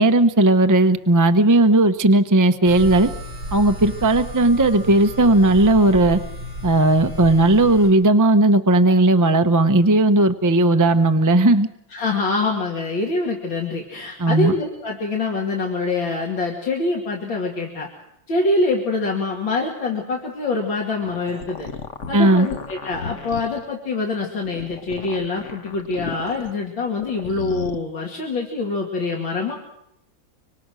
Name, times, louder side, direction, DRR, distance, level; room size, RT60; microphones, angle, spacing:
voice 1, 0.0-3.1 3.5-6.2 6.6-11.7 14.2-14.5 22.1-22.5, right 2 dB, 30° right, 9 dB, 0.3 m, -16 dB
sound 1, 2.6-7.9, equal, 80° right, 7.8 m, -33 dB
voice 2, 11.9-17.9 18.3-21.7 22.1-29.6, left 3 dB, 80° left, -1 dB, 3.2 m, -25 dB
sound 2, 20.9-23.7 24.3-26.5 26.9-27.8, left 6 dB, 45° left, 1.4 m, -35 dB
25.5 x 25.0 x 6.3 m, 0.82 s
omnidirectional pair, 2.1 m